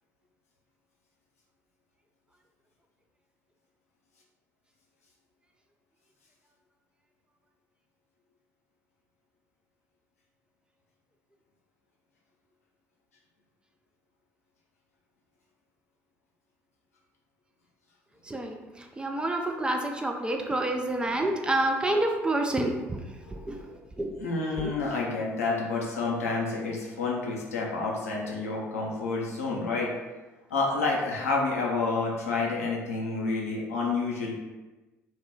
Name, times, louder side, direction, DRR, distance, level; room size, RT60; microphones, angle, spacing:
voice 1, 19.0-23.0 23.3-23.5 24.0-24.1, right 1 dB, 10° right, 3 dB, 0.3 m, -28 dB
voice 2, 20.6-21.0 21.5-21.7 23.3-23.7 24.2-29.9 30.5-34.4, left 3 dB, 80° left, -3 dB, 0.5 m, -29 dB
2.4 x 2.1 x 3.5 m, 1.2 s
figure-of-eight pair, 55°, 8 cm